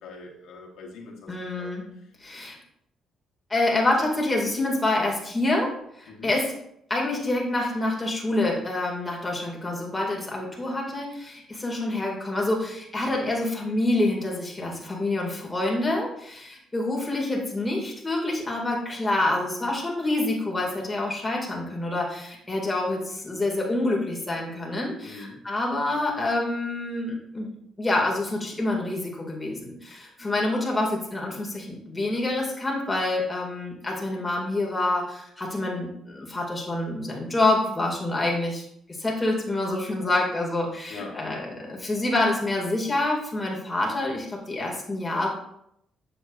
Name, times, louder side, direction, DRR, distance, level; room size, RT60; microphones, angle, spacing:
voice 1, 0.0-1.7 6.1-6.3 25.0-25.4 29.9-30.1 40.9-41.2, left 3 dB, 80° left, -1 dB, 1.6 m, -42 dB
voice 2, 1.3-1.8 2.2-2.6 3.5-5.7 6.0-6.5 6.9-27.5 27.8-38.6 39.0-45.3, left 2 dB, 15° left, -2 dB, 2.2 m, -27 dB
7.1 x 6.9 x 2.5 m, 0.76 s
cardioid pair, 90°, 0 cm